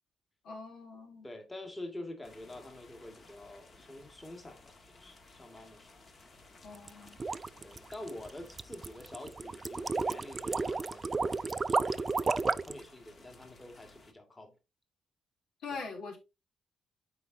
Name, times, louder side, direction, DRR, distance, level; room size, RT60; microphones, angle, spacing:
voice 1, 0.4-1.3 6.6-7.2 15.6-16.2, left 4 dB, 80° left, 3.1 m, -42 dB
voice 2, 1.2-5.9 7.6-12.2 12.7-14.5 15.7-15.8, left 1 dB, 15° left, 1.9 m, -47 dB
sound 1, 2.2-14.1, left 3 dB, 40° left, 1.7 m, -57 dB
sound 2, 6.7-12.8, right 4 dB, 30° right, 0.5 m, -32 dB
12.5 x 4.9 x 2.7 m
cardioid pair, 110°, 0 cm